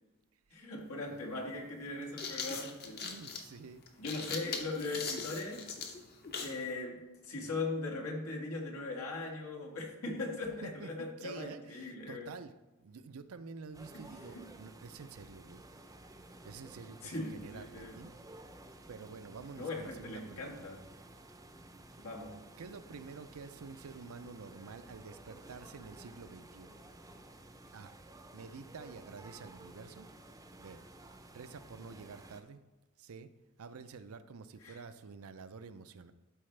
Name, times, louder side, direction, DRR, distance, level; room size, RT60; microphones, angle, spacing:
voice 1, 0.5-3.1 4.0-5.8 6.4-12.3 13.9-14.1 14.3-14.5 17.0-18.0 19.6-20.9 22.0-22.4 34.6-34.8, left 2 dB, 85° left, -1 dB, 1.7 m, -40 dB
sound 1, 0.8-0.9 1.9-6.6, left 5 dB, 50° left, 0.9 m, -40 dB
voice 2, 3.0-3.8 10.6-12.5 12.8-15.6 16.4-18.1 18.9-20.7 21.9-22.0 22.6-26.8 27.7-27.9 28.3-30.1 30.6-30.8 31.3-32.6 33.0-33.3 33.6-36.1, right 4 dB, 80° right, 11 dB, 0.5 m, -49 dB
sound 2, 13.7-32.4, right 1 dB, 15° right, 0.6 m, -54 dB
12.5 x 4.3 x 3.3 m, 1.1 s
head